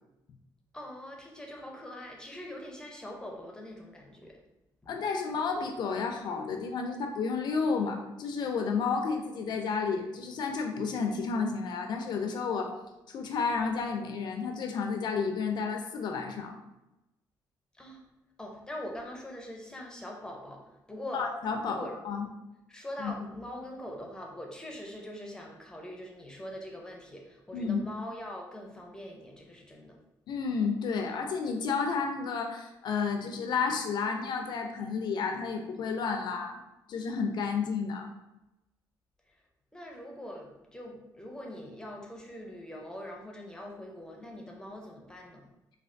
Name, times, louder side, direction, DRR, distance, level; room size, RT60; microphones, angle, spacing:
voice 1, 0.7-4.4 4.8-4.9 17.7-18.0 18.4-21.2 21.7-21.9 22.7-30.0 39.3-39.4 39.7-45.5, left 1 dB, 10° left, 0 dB, 0.5 m, -43 dB
voice 2, 4.9-12.7 13.1-16.6 21.1-22.3 23.0-23.1 27.5-27.8 30.3-36.6 36.9-38.1, left 5 dB, 65° left, 4 dB, 0.3 m, -31 dB
3.2 x 2.3 x 2.5 m, 0.95 s
cardioid pair, 105°, 8 cm